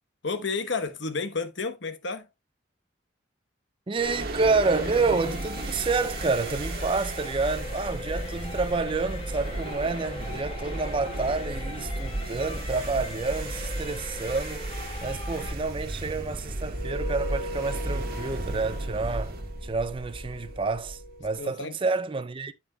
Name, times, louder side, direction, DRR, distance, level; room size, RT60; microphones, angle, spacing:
voice 1, 0.2-2.3 21.4-21.8, left 4 dB, 70° left, 1.1 m, -31 dB
voice 2, 3.9-14.7 15.0-19.3 19.6-22.5, right 3 dB, 25° right, 0.4 m, -29 dB
sound 1, 3.9-21.3, right 1 dB, 50° right, 1.6 m, -34 dB
sound 2, 4.6-15.5, left 3 dB, 30° left, 1.5 m, -41 dB
sound 3, 16.7-21.5, equal, 85° left, 2.6 m, -40 dB
8.9 x 8.7 x 2.3 m
head